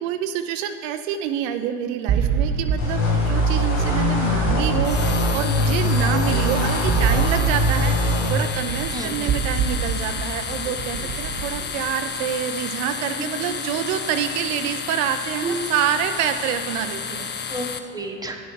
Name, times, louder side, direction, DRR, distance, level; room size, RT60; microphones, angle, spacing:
voice 1, 0.0-17.3, right 9 dB, 75° right, 7 dB, 0.6 m, -27 dB
sound 1, 2.1-11.6, right 6 dB, 50° right, 1.2 m, -25 dB
sound 2, 2.8-8.3, equal, 75° left, 2.1 m, -21 dB
sound 3, 4.8-17.8, left 6 dB, 25° left, 0.6 m, -32 dB
voice 2, 8.9-9.3 11.0-11.1 13.4-13.8 15.4-15.8 17.5-18.4, right 2 dB, 10° right, 1 dB, 1.3 m, -31 dB
10.0 x 7.2 x 4.6 m, 2.6 s
hypercardioid pair, 70°, 40 cm